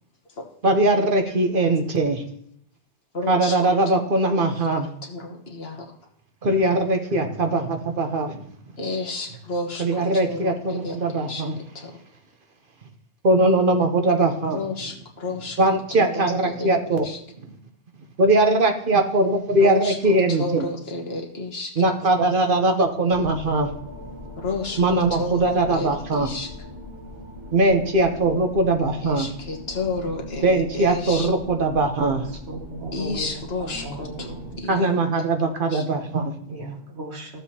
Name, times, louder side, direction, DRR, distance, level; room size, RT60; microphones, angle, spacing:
voice 1, 0.6-2.2 3.3-4.9 6.4-8.4 9.8-11.5 13.2-14.6 15.6-17.0 18.2-20.6 21.8-23.7 24.8-26.3 27.5-29.3 30.4-32.2 34.7-36.3, right 2 dB, 55° right, 5 dB, 1.1 m, -21 dB
voice 2, 3.1-3.9 4.4-6.0 8.8-12.0 14.4-17.2 19.6-21.9 22.3-22.4 24.4-26.5 29.0-31.3 32.9-35.2 35.7-35.9, left 2 dB, 65° left, 2 dB, 1.5 m, -32 dB
sound 1, 23.1-34.6, left 1 dB, 25° right, 1.8 m, -40 dB
voice 3, 32.0-34.4 34.9-35.0 36.5-37.4, right 1 dB, 75° right, 0 dB, 2.0 m, -36 dB
14.5 x 7.2 x 2.8 m, 0.69 s
omnidirectional pair, 1.1 m